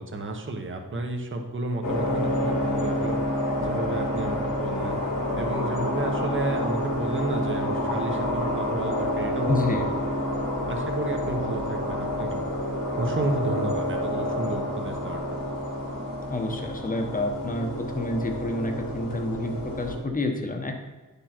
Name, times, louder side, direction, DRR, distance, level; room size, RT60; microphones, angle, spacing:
voice 1, 0.0-3.2 3.6-5.0 5.4-9.9 10.7-12.4 13.0-15.5, right 2 dB, 35° right, 3 dB, 1.1 m, -32 dB
sound 1, 1.8-20.0, left 1 dB, 90° left, 3.6 m, -28 dB
voice 2, 9.5-9.8 16.3-20.8, left 2 dB, 25° left, 4 dB, 1.1 m, -29 dB
10.5 x 6.9 x 4.4 m, 1.2 s
wide cardioid pair, 175°, 33 cm